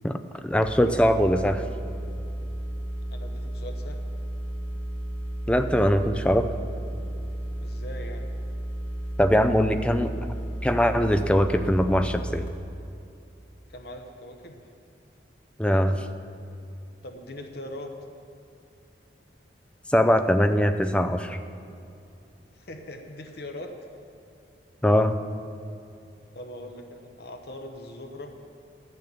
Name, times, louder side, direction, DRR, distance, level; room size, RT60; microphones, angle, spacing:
voice 1, 0.4-1.6 5.5-6.5 9.2-10.1 10.6-12.4 15.6-16.0 19.9-21.4 24.8-25.2, equal, 5° left, 8 dB, 0.4 m, -21 dB
sound 1, 0.6-12.5, right 1 dB, 75° left, 2.2 m, -33 dB
voice 2, 3.1-4.0 7.6-8.3 13.7-14.6 17.0-17.9 22.5-23.7 26.3-28.3, left 1 dB, 55° left, 4 dB, 1.0 m, -41 dB
12.0 x 6.6 x 8.4 m, 2.6 s
head